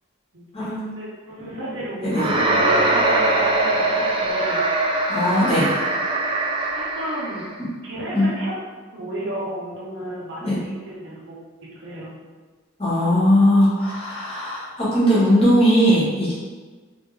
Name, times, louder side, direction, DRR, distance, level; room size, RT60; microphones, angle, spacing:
voice 1, 0.3-4.9 6.8-7.4 7.8-8.5 8.9-11.3 11.8-12.2, right 1 dB, 55° right, -5 dB, 0.9 m, -32 dB
sound 1, 2.1-7.5, right 2 dB, 25° right, 0.4 m, -21 dB
voice 2, 5.1-5.7 8.1-8.3 10.4-10.5 12.8-16.3, equal, 25° left, -10 dB, 1.4 m, -19 dB
3.4 x 2.6 x 3.2 m, 1.4 s
head